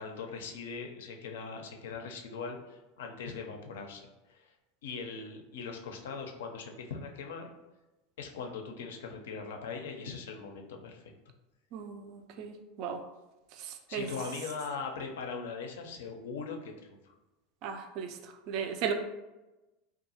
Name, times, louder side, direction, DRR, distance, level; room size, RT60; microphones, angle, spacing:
voice 1, 0.0-4.5 4.8-7.5 8.2-11.1 13.9-17.1, left 5 dB, 80° left, 3 dB, 0.4 m, -40 dB
voice 2, 11.7-13.0 13.5-14.1 17.6-18.9, right 7 dB, 55° right, 6 dB, 0.3 m, -36 dB
2.6 x 2.3 x 2.7 m, 1.0 s
hypercardioid pair, 95°, 0 cm